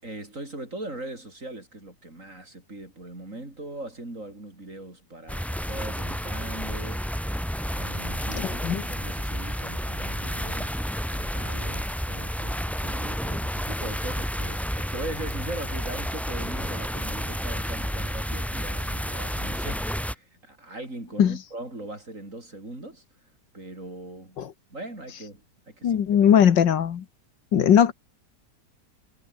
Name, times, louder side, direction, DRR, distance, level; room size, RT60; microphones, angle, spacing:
voice 1, 0.0-7.1 7.7-23.0 23.5-24.4 24.7-25.4 25.7-26.3, right 2 dB, 45° right, 7.1 m, -40 dB
sound 1, 5.3-20.1, equal, ahead, 1.9 m, -30 dB
voice 2, 8.4-8.8 21.2-21.4 24.4-24.5 25.8-27.0 27.5-27.9, left 9 dB, 80° left, 2.0 m, -19 dB
omnidirectional pair, 1.9 m